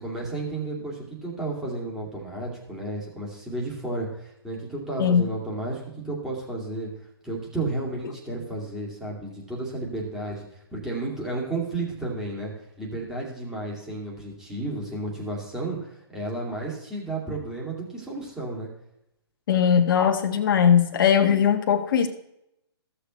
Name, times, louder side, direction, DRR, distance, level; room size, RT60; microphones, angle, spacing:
voice 1, 0.0-6.9 7.2-12.5 12.8-18.7, right 2 dB, 5° right, -4 dB, 2.4 m, -32 dB
voice 2, 19.5-22.1, left 8 dB, 50° left, 5 dB, 1.3 m, -20 dB
15.5 x 6.7 x 3.1 m, 0.80 s
hypercardioid pair, 145°, 14 cm